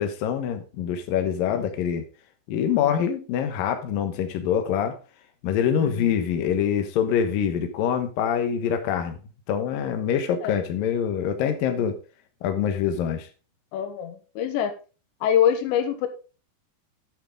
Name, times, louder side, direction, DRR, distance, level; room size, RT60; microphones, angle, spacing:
voice 1, 0.0-2.0 2.5-5.0 5.4-9.2 9.5-12.0 12.4-13.3, left 8 dB, 65° left, 6 dB, 2.7 m, -25 dB
voice 2, 5.8-6.1 10.4-10.6 13.7-14.7 15.2-16.1, left 9 dB, 85° left, 8 dB, 3.4 m, -25 dB
9.5 x 9.0 x 3.8 m, 0.34 s
omnidirectional pair, 4.9 m